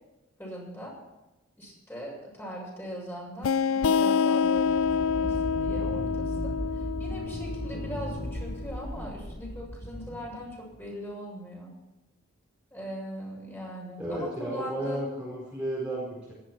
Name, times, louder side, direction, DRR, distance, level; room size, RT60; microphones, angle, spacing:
voice 1, 0.4-0.9 1.6-11.7 12.7-15.2, equal, 10° left, -3 dB, 6.8 m, -40 dB
sound 1, 3.4-8.8, left 6 dB, 90° left, 0.4 m, -27 dB
sound 2, 4.4-10.9, equal, 45° left, 2.7 m, -36 dB
voice 2, 14.0-16.3, right 1 dB, 5° right, -7 dB, 4.6 m, -33 dB
18.5 x 13.5 x 4.7 m, 1.0 s
head